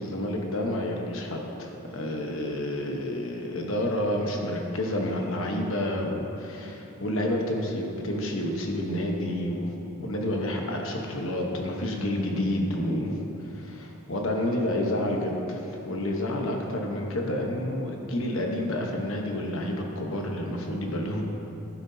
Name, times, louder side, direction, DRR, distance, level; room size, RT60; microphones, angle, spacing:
voice 1, 0.0-9.7 10.0-21.2, left 1 dB, 60° left, 1 dB, 1.1 m, -29 dB
11.5 x 9.5 x 2.8 m, 2.9 s
head